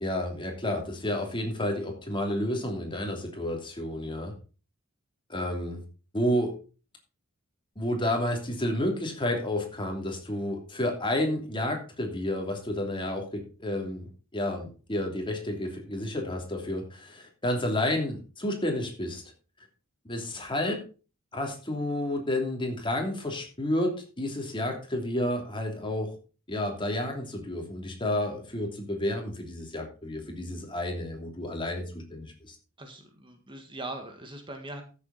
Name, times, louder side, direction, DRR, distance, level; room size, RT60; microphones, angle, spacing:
voice 1, 0.0-4.3 5.3-5.8 6.1-6.5 7.8-19.2 20.0-20.8 21.3-26.2 26.5-32.6, left 1 dB, 25° left, 2 dB, 3.0 m, -30 dB
voice 2, 32.8-34.8, right 2 dB, 25° right, 5 dB, 1.7 m, -40 dB
14.0 x 7.2 x 4.2 m, 0.34 s
head